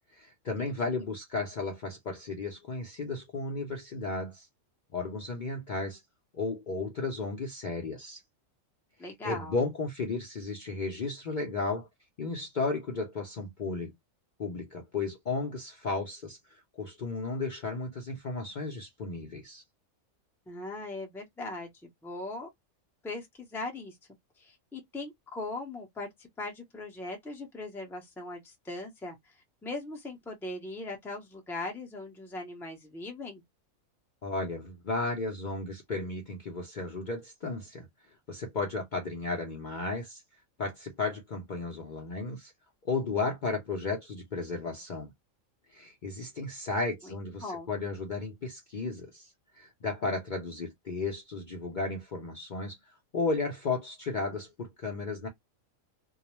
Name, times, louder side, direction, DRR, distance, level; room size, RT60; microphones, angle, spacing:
voice 1, 0.1-4.5 4.9-6.0 6.3-8.2 9.0-11.9 12.2-13.9 14.4-19.6 34.2-37.9 38.3-40.2 40.6-42.5 42.8-45.1 45.7-55.3, left 3 dB, 50° left, 0.6 m, -34 dB
voice 2, 9.0-9.6 20.5-22.5 23.0-23.9 24.4-26.1 26.4-29.2 29.6-33.4 47.0-47.1 47.4-47.7, left 2 dB, ahead, 0.5 m, -39 dB
2.3 x 2.0 x 2.9 m
omnidirectional pair, 1.4 m